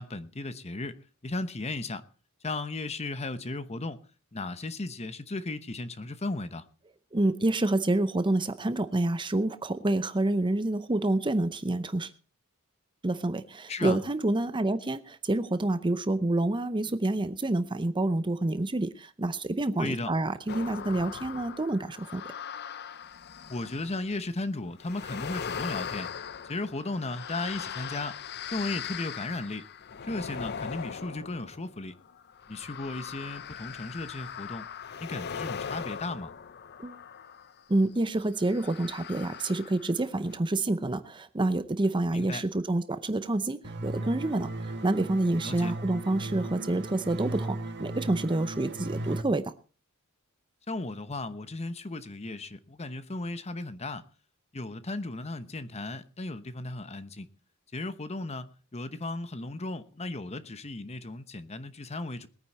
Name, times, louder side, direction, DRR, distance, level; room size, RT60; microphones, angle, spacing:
voice 1, 0.0-2.1 2.4-4.0 4.3-6.7 13.7-14.0 19.8-20.1 23.5-26.1 26.4-28.2 28.5-29.7 30.0-31.9 32.5-34.7 35.0-36.3 42.1-42.4 45.4-45.7 50.7-54.0 54.5-57.3 57.7-62.3, left 2 dB, 30° left, 0.9 m, -35 dB
voice 2, 7.1-12.1 13.0-22.2 36.8-37.0 37.7-49.5, right 2 dB, 20° right, 0.7 m, -28 dB
sound 1, 20.5-24.2 24.8-37.6 38.4-40.0 40.3-40.4, left 7 dB, 45° left, 0.6 m, -40 dB
sound 2, 43.6-49.2, right 2 dB, 50° right, 1.8 m, -36 dB
21.0 x 9.5 x 4.2 m
head